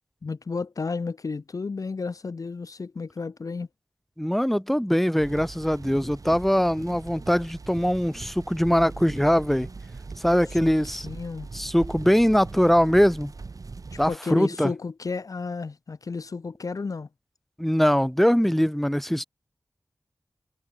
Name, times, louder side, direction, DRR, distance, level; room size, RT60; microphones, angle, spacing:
voice 1, 0.2-3.7 10.6-10.7 11.0-11.5 13.9-17.1, left 4 dB, 65° left, 1.1 m, -32 dB
voice 2, 4.2-9.7 10.2-11.1 11.5-13.3 14.0-14.7 17.6-19.2, equal, 5° left, 2.2 m, -22 dB
sound 1, 5.2-14.2, right 4 dB, 65° right, 5.8 m, -41 dB
wide cardioid pair, 70°, 6 cm